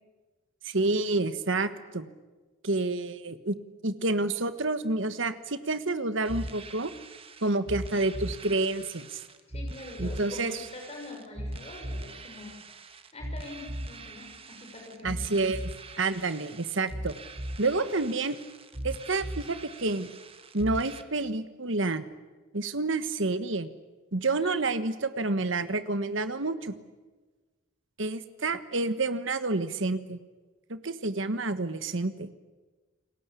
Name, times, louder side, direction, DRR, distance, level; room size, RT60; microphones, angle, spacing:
voice 1, 0.6-2.1 2.6-3.6 3.8-6.9 7.4-9.2 10.0-10.6 15.0-15.7 16.0-17.1 17.6-18.4 18.8-20.1 20.5-22.0 22.5-23.7 24.1-26.7 28.0-30.2 30.7-32.3, right 3 dB, 60° right, 12 dB, 1.4 m, -29 dB
sound 1, 6.2-21.0, right 1 dB, 25° right, 1.4 m, -40 dB
voice 2, 9.5-12.5 13.1-15.2 24.3-24.5, left 2 dB, 30° left, 1 dB, 6.0 m, -44 dB
29.0 x 20.5 x 8.4 m, 1.3 s
head